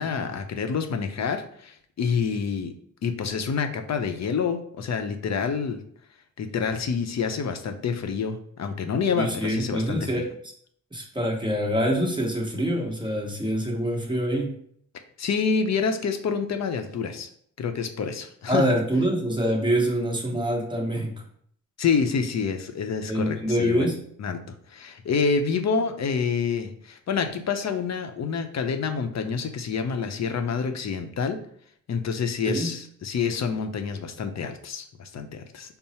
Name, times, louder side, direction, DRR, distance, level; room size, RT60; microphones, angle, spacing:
voice 1, 0.0-2.7 3.0-5.8 6.4-10.2 15.2-17.3 17.6-18.6 21.8-23.9 24.2-31.4 31.9-35.8, left 5 dB, 55° left, 7 dB, 0.6 m, -27 dB
voice 2, 9.1-10.3 10.9-14.5 18.5-21.1 23.1-24.0 32.4-32.7, right 1 dB, 15° right, -1 dB, 1.1 m, -25 dB
5.4 x 2.0 x 4.2 m, 0.64 s
cardioid pair, 95°, 32 cm